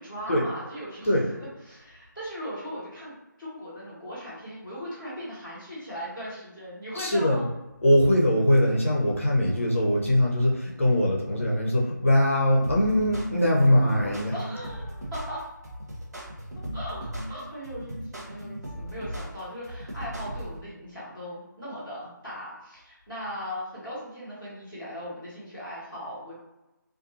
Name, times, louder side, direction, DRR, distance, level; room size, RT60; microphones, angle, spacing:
voice 1, 0.0-7.5 14.3-15.4 16.7-26.3, equal, 5° right, -14 dB, 0.6 m, -38 dB
voice 2, 6.9-7.5 7.8-14.3, left 1 dB, 40° left, -2 dB, 0.5 m, -22 dB
sound 1, 12.6-20.6, equal, 55° right, 0.7 m, -37 dB
2.4 x 2.3 x 2.6 m, 0.99 s
figure-of-eight pair, 160°, 11 cm